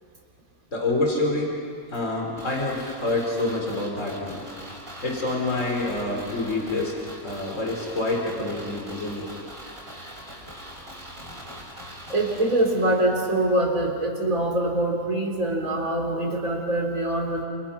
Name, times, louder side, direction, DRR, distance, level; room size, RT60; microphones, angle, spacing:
voice 1, 0.7-1.6 1.9-4.4 5.0-6.9 7.2-9.3, left 2 dB, 55° left, 0 dB, 4.5 m, -27 dB
sound 1, 2.4-13.3 13.6-13.7, equal, 40° right, 6.3 m, -42 dB
voice 2, 12.1-17.4, right 1 dB, 60° right, 0 dB, 4.2 m, -24 dB
29.0 x 28.0 x 5.9 m, 2.4 s
omnidirectional pair, 1.6 m